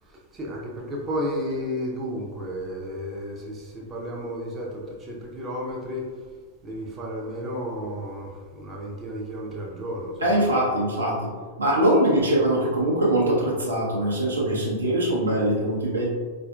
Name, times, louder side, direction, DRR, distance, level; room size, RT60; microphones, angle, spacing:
voice 1, 0.0-6.1 6.6-10.6, equal, 20° right, -2 dB, 0.6 m, -33 dB
voice 2, 10.2-11.2 11.6-16.1, right 1 dB, 80° right, -4 dB, 0.8 m, -22 dB
4.1 x 2.5 x 2.3 m, 1.5 s
figure-of-eight pair, 90°, 0 cm